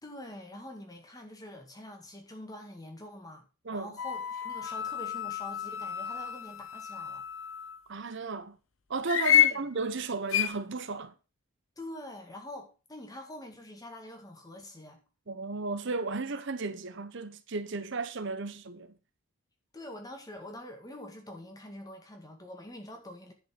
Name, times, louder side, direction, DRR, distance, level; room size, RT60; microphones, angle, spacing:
voice 1, 0.0-3.4 3.7-7.3 9.3-9.6 11.8-15.0 19.7-23.3, left 1 dB, 15° left, 2.0 m, -45 dB
sound 1, 4.0-7.8 9.1-9.6 10.3-10.5, left 10 dB, 65° left, 0.8 m, -29 dB
voice 2, 7.9-8.6 8.9-11.1 15.3-18.9, right 3 dB, 55° right, 0.8 m, -34 dB
10.0 x 5.4 x 5.9 m
head